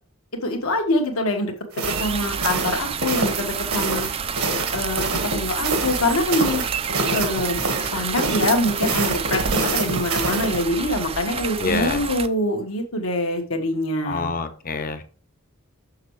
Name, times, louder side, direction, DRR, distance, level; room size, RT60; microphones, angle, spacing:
voice 1, 0.4-1.5 2.0-4.1 4.7-6.6 7.1-7.6 7.9-14.3, left 1 dB, 75° left, 3 dB, 1.5 m, -24 dB
sound 1, 1.7-10.7, right 3 dB, 80° right, 1.4 m, -27 dB
sound 2, 1.8-12.3, right 6 dB, 25° right, 0.4 m, -29 dB
voice 2, 11.6-12.0 14.1-15.0, left 4 dB, 45° left, 9 dB, 0.8 m, -26 dB
6.4 x 6.4 x 3.1 m, 0.39 s
head